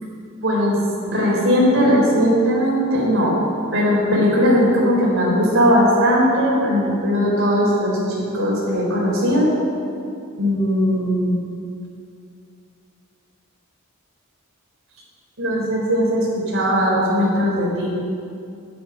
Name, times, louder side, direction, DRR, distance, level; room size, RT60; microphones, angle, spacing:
voice 1, 0.4-0.8 1.1-3.3 3.7-9.5 10.4-11.4 15.4-17.9, equal, 60° right, -4 dB, 4.2 m, -18 dB
10.5 x 9.4 x 8.9 m, 2.5 s
head